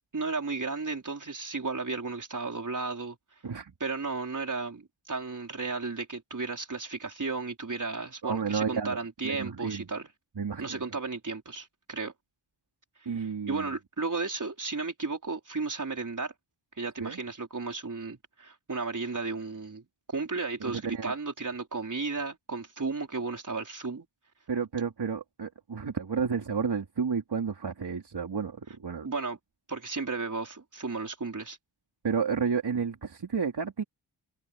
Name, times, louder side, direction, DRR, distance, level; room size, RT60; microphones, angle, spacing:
voice 1, 0.1-3.2 3.8-10.1 10.6-12.1 13.0-16.3 16.8-19.8 20.1-24.1 29.0-29.4 29.7-31.6, right 4 dB, 40° right, 4.7 m, -34 dB
voice 2, 8.2-9.0 9.2-9.9 10.4-10.8 13.1-13.7 17.0-17.2 20.6-21.1 24.5-29.1 32.0-33.8, right 6 dB, 55° right, 3.8 m, -31 dB
wide cardioid pair, 105°, 47 cm